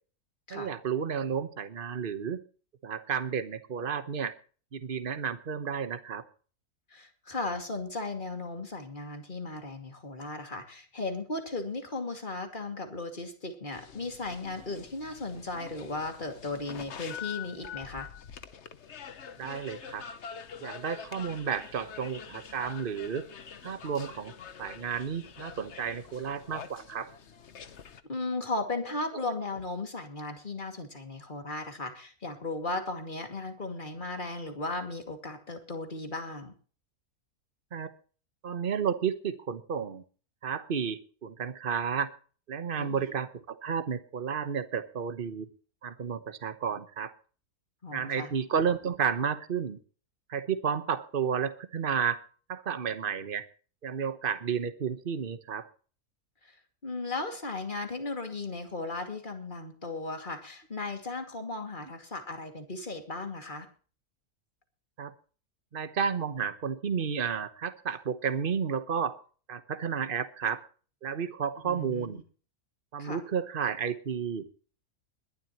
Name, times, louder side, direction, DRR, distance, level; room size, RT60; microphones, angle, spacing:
voice 1, 0.5-2.4 2.8-4.3 4.7-6.2 19.4-20.1 20.6-23.3 23.6-24.3 24.6-27.1 37.7-37.9 38.4-40.0 40.4-42.1 42.5-45.5 45.8-47.1 47.9-49.8 50.3-52.2 52.5-53.4 53.8-55.7 65.0-65.1 65.7-69.2 69.5-70.6 71.0-72.2 72.9-74.5, right 7 dB, 40° right, 11 dB, 1.2 m, -32 dB
voice 2, 6.9-18.1 28.1-36.5 42.8-43.0 47.8-48.3 56.4-56.6 56.8-63.7 71.6-72.2 73.0-73.2, left 2 dB, 30° left, 5 dB, 2.6 m, -36 dB
sound 1, 13.7-28.0, left 7 dB, 50° left, 1.2 m, -45 dB
21.5 x 11.5 x 3.1 m, 0.39 s
omnidirectional pair, 1.6 m